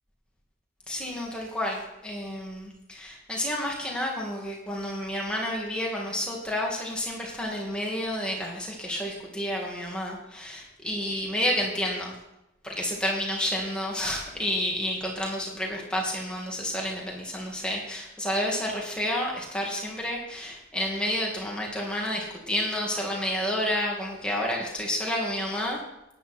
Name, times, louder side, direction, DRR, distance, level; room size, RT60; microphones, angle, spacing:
voice 1, 0.9-12.1 12.6-25.8, left 1 dB, 5° left, -2 dB, 2.3 m, -30 dB
13.0 x 10.0 x 4.5 m, 0.90 s
head